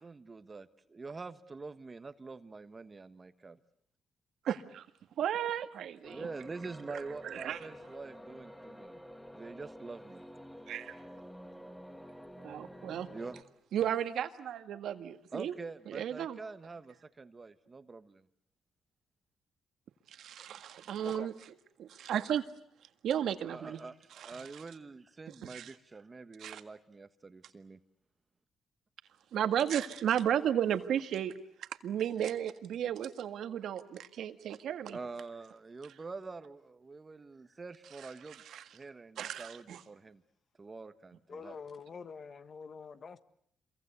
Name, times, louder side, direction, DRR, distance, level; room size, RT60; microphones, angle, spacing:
voice 1, 0.0-3.6 6.0-9.0 9.3-10.2 12.8-13.3 15.3-18.3 23.4-27.8 34.9-38.4 38.7-40.2 40.6-41.6, right 4 dB, 30° right, 11 dB, 1.3 m, -46 dB
voice 2, 4.4-4.9 5.2-6.3 6.9-7.0 7.2-7.6 10.7-10.9 12.4-13.1 13.7-15.5 15.9-16.4 20.2-21.3 21.8-22.4 23.0-23.8 24.3-24.4 25.5-25.7 26.4-26.6 29.3-31.3 31.8-35.0 38.5-38.6 39.2-39.8, right 10 dB, 70° right, 9 dB, 1.8 m, -34 dB
sound 1, 6.0-13.4, equal, 5° left, 1.8 m, -50 dB
voice 3, 41.3-43.2, left 5 dB, 45° left, 12 dB, 1.5 m, -46 dB
27.0 x 23.0 x 8.4 m, 0.69 s
cardioid pair, 90°, 0 cm